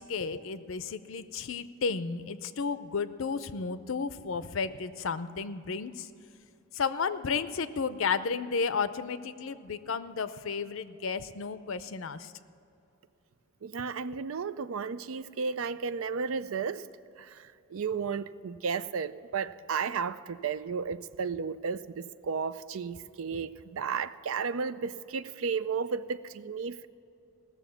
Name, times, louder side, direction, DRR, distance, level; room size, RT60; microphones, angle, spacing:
voice 1, 0.0-6.1 6.7-12.3 14.1-14.2 23.3-23.4, left 5 dB, 70° left, 13 dB, 0.5 m, -33 dB
voice 2, 13.6-16.8 17.2-26.9, right 5 dB, 75° right, 15 dB, 0.4 m, -33 dB
17.5 x 7.0 x 7.0 m, 2.7 s
head